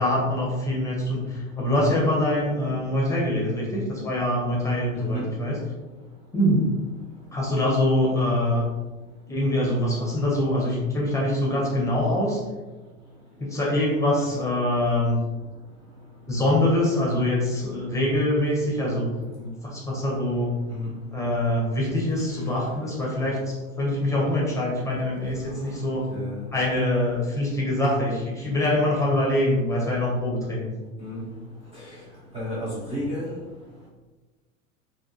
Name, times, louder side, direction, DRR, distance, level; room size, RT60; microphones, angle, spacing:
voice 1, 0.0-5.6 6.3-6.6 7.3-8.7 9.3-12.4 13.4-15.2 16.3-19.1 19.4-20.6 21.1-26.1 26.5-30.7, left 1 dB, 10° left, -4 dB, 0.8 m, -24 dB
voice 2, 26.1-26.4 31.0-31.3 31.8-31.9 32.3-33.3, equal, 15° right, -7 dB, 0.5 m, -31 dB
3.4 x 2.4 x 2.6 m, 1.2 s
figure-of-eight pair, 85°, 40 cm